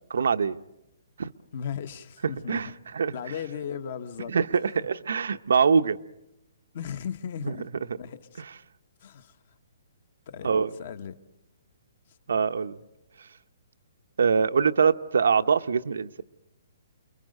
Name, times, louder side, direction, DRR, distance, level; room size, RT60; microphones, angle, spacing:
voice 1, 0.1-0.6 1.2-1.3 2.5-2.7 2.9-3.2 4.3-6.0 7.4-7.6 10.4-10.7 12.3-12.8 14.2-16.2, right 6 dB, 75° right, 10 dB, 0.8 m, -23 dB
voice 2, 1.5-2.7 3.1-4.3 4.8-4.9 6.7-7.7 8.0-8.4 9.0-9.3 10.3-10.5 10.8-11.1, left 8 dB, 35° left, 13 dB, 1.1 m, -36 dB
29.5 x 22.0 x 6.5 m, 0.91 s
hypercardioid pair, 180°, 0 cm